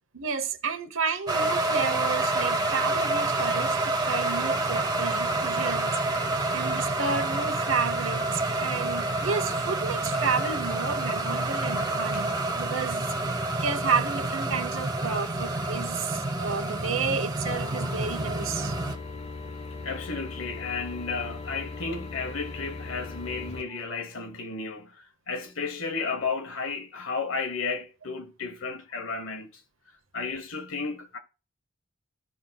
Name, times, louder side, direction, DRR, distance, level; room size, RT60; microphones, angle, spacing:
voice 1, 0.1-18.8, right 5 dB, 80° right, 1.0 m, -31 dB
sound 1, 1.3-19.0, right 2 dB, 20° right, 0.9 m, -28 dB
sound 2, 17.5-23.6, left 3 dB, 35° left, 1.1 m, -39 dB
voice 2, 19.8-29.5 30.1-31.2, left 4 dB, 75° left, 1.2 m, -33 dB
14.5 x 5.6 x 2.3 m
head